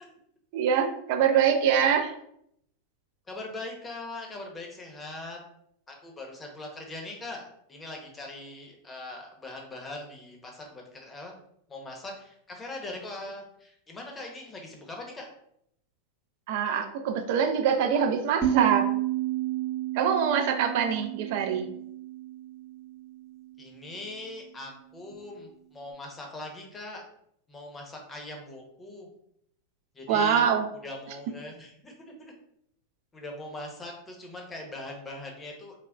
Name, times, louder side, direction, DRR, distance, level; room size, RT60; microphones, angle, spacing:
voice 1, 0.5-2.1 16.5-18.9 19.9-21.7 30.1-30.7, right 7 dB, 60° right, 6 dB, 0.3 m, -24 dB
voice 2, 3.3-5.4 5.9-11.3 11.7-15.3 23.6-27.0 27.5-29.1 29.9-30.5 30.8-32.3 33.1-35.7, left 2 dB, 20° left, 1 dB, 0.7 m, -41 dB
sound 1, 18.4-23.6, right 13 dB, 15° right, 0.6 m, -31 dB
3.5 x 2.1 x 2.2 m, 0.73 s
hypercardioid pair, 110°, 0 cm